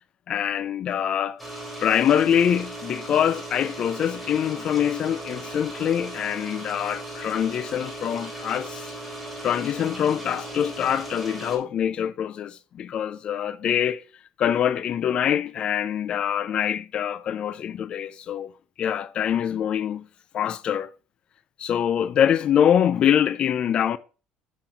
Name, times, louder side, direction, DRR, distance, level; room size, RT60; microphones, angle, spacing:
voice 1, 0.3-1.4 1.8-8.8 9.4-14.0 14.4-18.5 18.8-20.0 20.3-20.9 21.6-24.0, left 9 dB, 45° left, 0.4 m, -24 dB
sound 1, 1.4-11.6, right 1 dB, ahead, 3.3 m, -37 dB
8.9 x 4.4 x 4.9 m
cardioid pair, 125°, 2 cm